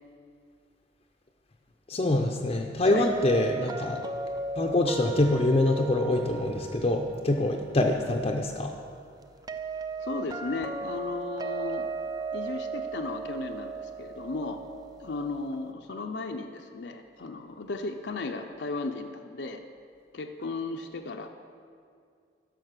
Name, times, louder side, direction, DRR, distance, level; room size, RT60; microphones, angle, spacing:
voice 1, 1.9-4.0 4.6-8.7, left 2 dB, 35° left, 2 dB, 0.6 m, -25 dB
sound 1, 2.9-15.7, right 3 dB, 20° right, 0.4 m, -37 dB
voice 2, 10.0-11.9 12.3-14.6 15.0-19.6 20.1-21.3, left 3 dB, 70° left, 4 dB, 0.6 m, -35 dB
10.5 x 6.5 x 6.6 m, 2.3 s
head